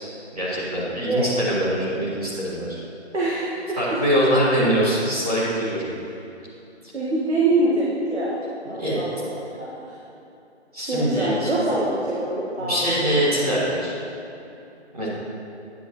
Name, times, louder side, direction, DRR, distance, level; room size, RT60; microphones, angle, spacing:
voice 1, 0.3-2.8 3.8-5.9 8.8-9.0 10.7-11.5 12.6-13.9 14.9-15.1, equal, 35° right, -10 dB, 2.1 m, -23 dB
voice 2, 1.0-1.3 3.1-4.0 6.9-8.4 8.7-9.7 10.9-13.4, right 2 dB, 75° right, -6 dB, 1.7 m, -25 dB
9.7 x 8.2 x 3.1 m, 2.8 s
hypercardioid pair, 180°, 35 cm